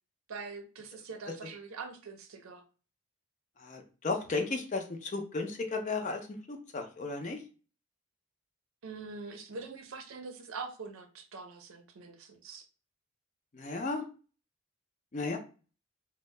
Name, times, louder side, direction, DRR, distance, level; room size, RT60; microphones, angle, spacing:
voice 1, 0.3-2.6 8.8-12.7, right 4 dB, 90° right, 7 dB, 0.5 m, -44 dB
voice 2, 3.6-6.2 6.5-7.4 13.5-14.0 15.1-15.4, left 3 dB, 35° left, 4 dB, 0.4 m, -34 dB
2.6 x 2.1 x 3.2 m, 0.36 s
head